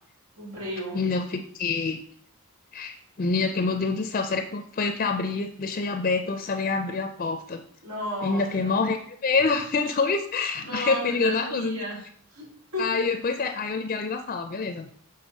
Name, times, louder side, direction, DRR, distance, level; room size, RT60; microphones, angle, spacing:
voice 1, 0.4-1.0 7.8-8.7 10.6-12.0 12.3-13.0, equal, 85° right, -5 dB, 2.9 m, -34 dB
voice 2, 0.9-2.0 2.7-7.6 8.2-11.9 12.8-14.9, left 4 dB, 40° left, 7 dB, 0.4 m, -26 dB
7.1 x 3.8 x 5.3 m, 0.63 s
head